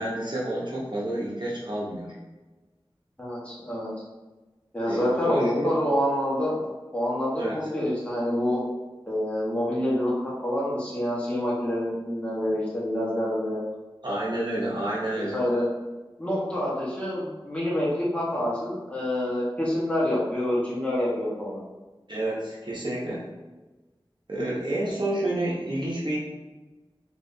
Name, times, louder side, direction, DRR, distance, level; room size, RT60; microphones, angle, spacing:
voice 1, 0.0-2.2 4.9-5.7 7.4-7.6 14.0-15.4 22.1-23.2 24.3-26.2, right 1 dB, 55° right, -6 dB, 0.9 m, -29 dB
voice 2, 3.2-3.9 4.7-6.6 6.9-8.6 9.1-13.6 15.1-15.7 16.2-21.6, left 1 dB, 10° left, -7 dB, 1.4 m, -27 dB
3.5 x 3.1 x 2.7 m, 1.2 s
wide cardioid pair, 40°, 10 cm